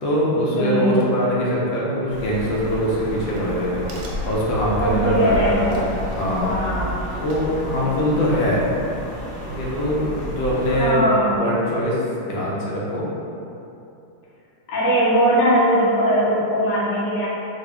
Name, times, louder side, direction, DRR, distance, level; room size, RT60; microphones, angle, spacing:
voice 1, 0.0-3.8 4.2-6.5 7.2-8.6 9.4-13.1, equal, 70° left, -6 dB, 1.3 m, -22 dB
voice 2, 0.6-0.9 4.8-5.8 6.4-7.1 7.7-8.2 10.7-11.4 14.7-17.3, equal, 85° left, -7 dB, 1.8 m, -20 dB
sound 1, 2.1-10.9, equal, 10° left, 0.4 m, -33 dB
Crack, 3.3-8.0, left 1 dB, 70° right, 1.2 m, -33 dB
3.6 x 2.7 x 3.3 m, 2.8 s
omnidirectional pair, 2.3 m